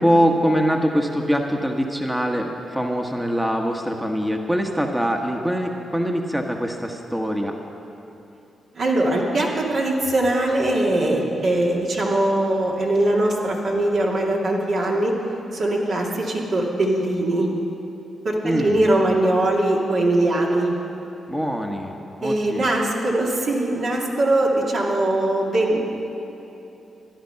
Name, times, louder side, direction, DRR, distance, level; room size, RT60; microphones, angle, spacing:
voice 1, 0.0-7.6 18.4-18.8 21.3-22.7, equal, 5° right, 2 dB, 1.3 m, -23 dB
voice 2, 8.7-15.1 15.5-17.5 18.2-20.7 22.2-25.8, right 1 dB, 65° right, -3 dB, 2.4 m, -21 dB
13.5 x 11.0 x 5.8 m, 3.0 s
supercardioid pair, 50°, 0 cm